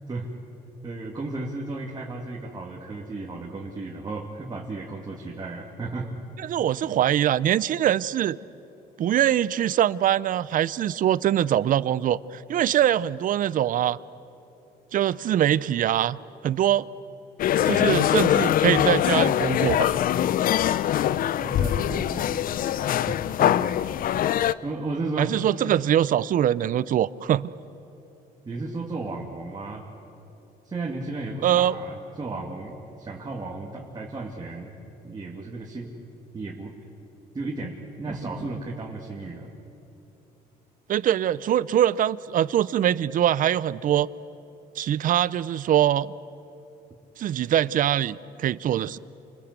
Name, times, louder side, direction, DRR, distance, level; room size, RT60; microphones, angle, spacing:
voice 1, 0.8-6.1 21.4-22.7 23.1-23.7 24.6-25.3 28.5-29.9 30.6-34.7 35.0-35.9 36.3-36.7 37.3-39.5, right 3 dB, 25° right, -2 dB, 2.6 m, -34 dB
voice 2, 6.5-8.4 9.0-14.0 14.9-16.2 16.4-16.9 17.7-20.0 25.2-27.5 31.4-31.8 40.9-44.1 44.8-46.1 47.2-49.0, right 11 dB, 55° right, 19 dB, 0.6 m, -23 dB
sound 1, 17.4-24.5, left 11 dB, 55° left, 0.6 m, -23 dB
28.5 x 20.5 x 8.2 m, 2.9 s
cardioid pair, 110°, 17 cm